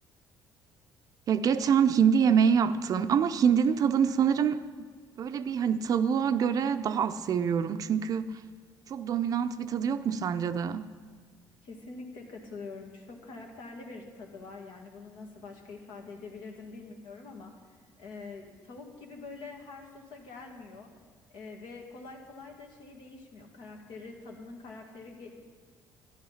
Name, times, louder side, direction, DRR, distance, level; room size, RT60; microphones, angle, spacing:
voice 1, 1.3-4.6 5.2-8.3 8.9-10.9, right 7 dB, 45° right, 0.5 m, -25 dB
voice 2, 11.6-17.5 18.0-20.9 21.3-25.4, left 3 dB, 75° left, 2.1 m, -45 dB
11.5 x 11.0 x 5.7 m
cardioid pair, 125°, 8 cm